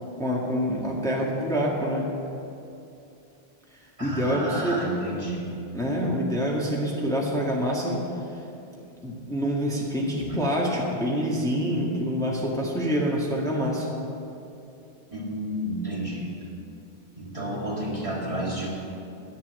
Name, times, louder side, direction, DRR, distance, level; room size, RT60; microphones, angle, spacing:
voice 1, 0.2-2.0 3.8-4.9 5.7-8.4 9.0-13.9, equal, 5° left, -4 dB, 1.7 m, -26 dB
voice 2, 4.0-5.5 10.3-10.4 15.1-16.3 17.2-18.7, right 1 dB, 30° right, -4 dB, 2.1 m, -31 dB
11.0 x 9.5 x 8.1 m, 2.7 s
omnidirectional pair, 1.1 m